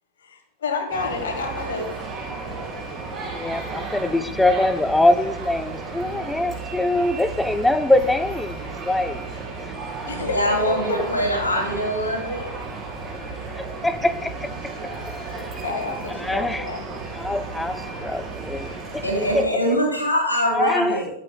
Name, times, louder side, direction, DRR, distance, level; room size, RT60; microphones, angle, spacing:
voice 1, 0.2-1.9 9.5-9.7 10.0-11.0 13.5-13.6 15.3-16.8, left 3 dB, 65° left, 5 dB, 1.4 m, -29 dB
sound 1, 0.9-19.4, right 3 dB, 30° right, 3.0 m, -34 dB
voice 2, 3.2-9.2 9.6-9.7 13.6-14.7 15.3-15.6 16.1-16.7 17.1-19.0 19.3-19.4 20.5-21.0, left 1 dB, 5° left, 12 dB, 0.5 m, -23 dB
voice 3, 10.0-12.6 19.0-21.1, equal, 85° left, -1 dB, 2.5 m, -23 dB
10.5 x 8.5 x 2.2 m, 0.81 s
figure-of-eight pair, 90°, 0 cm